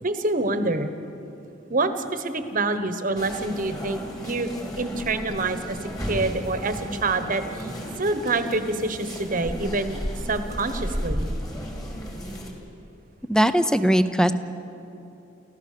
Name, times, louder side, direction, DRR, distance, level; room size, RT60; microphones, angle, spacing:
voice 1, 0.0-0.9 1.7-4.5 4.8-7.7 8.0-10.0 10.3-11.3, right 2 dB, 45° right, 9 dB, 1.2 m, -26 dB
sound 1, 3.2-12.5, equal, 20° left, 2.8 m, -33 dB
voice 2, 13.3-14.3, equal, 5° left, 11 dB, 0.7 m, -19 dB
29.5 x 15.0 x 6.7 m, 2.9 s
head